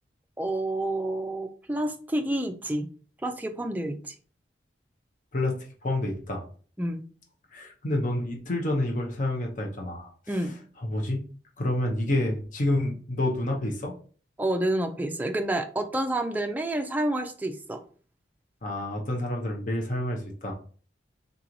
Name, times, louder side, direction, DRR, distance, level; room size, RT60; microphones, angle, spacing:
voice 1, 0.4-2.9 3.2-4.1 6.8-7.0 10.3-10.6 14.4-17.8, right 1 dB, 10° right, 5 dB, 0.4 m, -29 dB
voice 2, 5.8-6.4 7.5-10.3 10.8-11.2 11.6-13.9 18.6-20.5, left 1 dB, 45° left, 0 dB, 0.8 m, -28 dB
3.9 x 3.0 x 3.8 m, 0.42 s
head